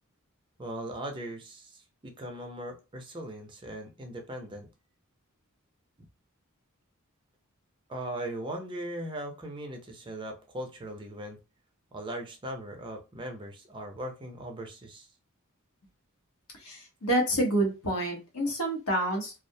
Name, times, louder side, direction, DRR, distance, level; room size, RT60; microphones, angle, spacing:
voice 1, 0.6-4.7 7.9-11.4 11.9-15.1, right 1 dB, 20° right, 3 dB, 0.5 m, -39 dB
voice 2, 16.6-19.3, right 1 dB, 90° left, 1 dB, 0.9 m, -28 dB
2.4 x 2.0 x 2.6 m, 0.28 s
head